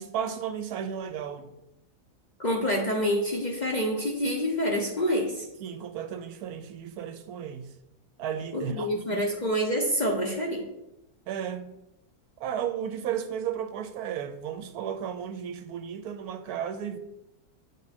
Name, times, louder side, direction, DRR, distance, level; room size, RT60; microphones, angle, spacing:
voice 1, 0.0-1.5 5.6-7.7 8.2-9.2 11.3-11.7 12.4-17.0, right 8 dB, 80° right, 1.1 m, -34 dB
voice 2, 2.4-5.5 8.5-10.7, equal, 40° left, 0.7 m, -27 dB
8.6 x 3.6 x 4.1 m
omnidirectional pair, 1.7 m